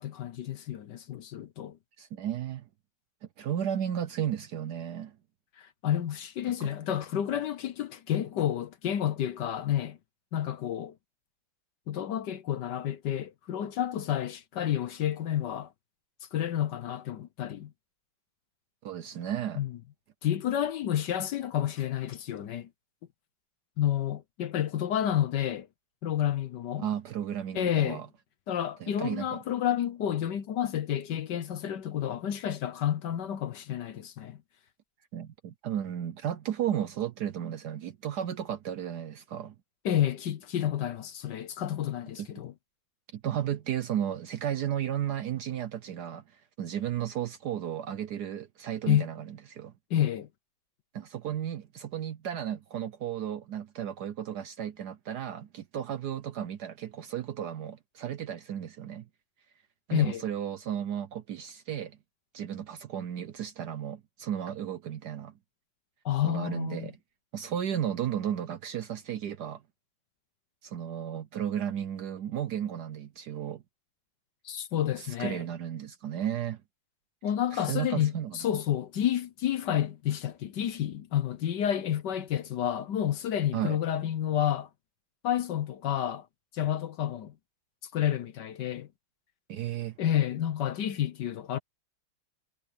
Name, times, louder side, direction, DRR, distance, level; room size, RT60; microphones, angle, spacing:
voice 1, 0.0-1.8 5.6-10.0 10.3-10.9 11.9-15.7 16.3-17.7 19.6-19.7 20.2-22.7 23.8-25.7 26.0-26.9 27.5-28.0 28.5-34.4 39.8-42.5 48.9-49.1 49.9-50.3 59.9-60.2 66.0-66.9 74.4-75.4 77.2-84.7 85.2-86.3 86.5-87.3 87.9-88.9 90.0-91.6, left 10 dB, 65° left, 1.3 m, -30 dB
voice 2, 2.0-2.6 3.4-5.2 6.6-6.7 18.8-19.6 26.8-28.1 28.8-29.4 35.1-39.5 42.2-42.3 43.1-49.7 50.9-59.1 59.9-62.0 62.3-65.3 66.2-67.0 67.3-69.6 70.6-73.6 75.0-76.6 77.5-78.5 83.5-83.8 89.5-90.0, right 10 dB, 65° right, 1.1 m, -34 dB
omnidirectional pair, 2.3 m